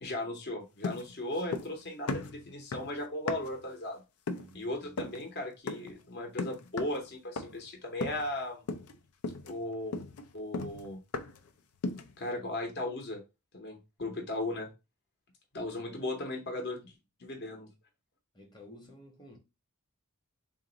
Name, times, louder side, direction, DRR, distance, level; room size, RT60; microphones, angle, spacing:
voice 1, 0.0-4.0 4.5-8.6 9.4-9.9 10.3-11.0 12.2-13.2 13.5-14.7 15.5-16.9 17.2-17.7, left 1 dB, 50° left, 0.8 m, -37 dB
sound 1, 0.8-1.8 2.1-3.7 4.3-4.6 5.0-5.2 5.7-6.0 6.4-7.0 7.4-7.7 8.0-8.4 8.7-9.0 9.2-11.5 11.8-12.2, left 3 dB, 80° left, 0.4 m, -37 dB
voice 2, 4.3-5.2 14.4-14.5 15.9-16.3 16.5-16.9 18.3-19.4, equal, 20° left, 0.9 m, -54 dB
3.8 x 2.5 x 3.8 m
head